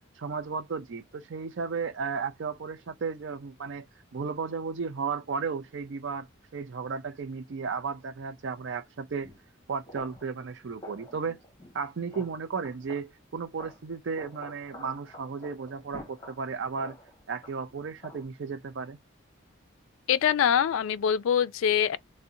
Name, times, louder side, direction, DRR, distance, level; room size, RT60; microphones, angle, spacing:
voice 1, 0.2-3.9 4.1-9.3 9.7-11.4 11.7-16.9 17.3-19.0, right 5 dB, 60° right, 0.4 m, -34 dB
sound 1, 9.2-9.4 9.8-10.3 10.8-11.8 12.1-13.0 13.3-18.2, left 1 dB, 20° left, 0.9 m, -48 dB
voice 2, 20.1-22.0, left 8 dB, 75° left, 0.3 m, -24 dB
2.7 x 2.1 x 3.6 m
head